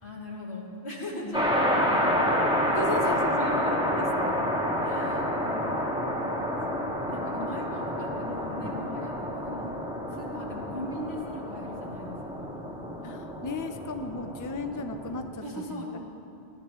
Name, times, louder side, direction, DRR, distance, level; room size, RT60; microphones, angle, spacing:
voice 1, 0.0-2.6 3.3-3.9 4.8-6.3 7.0-9.8 10.1-12.6 15.4-16.0, left 1 dB, 80° left, -5 dB, 3.0 m, -40 dB
voice 2, 1.2-1.9 2.7-4.4 8.6-8.8 13.0-15.4 15.7-16.0, left 2 dB, 20° left, 6 dB, 0.6 m, -35 dB
sound 1, 1.3-15.3, equal, 5° right, 2.0 m, -29 dB
22.0 x 16.5 x 3.1 m, 2.6 s
omnidirectional pair, 1.1 m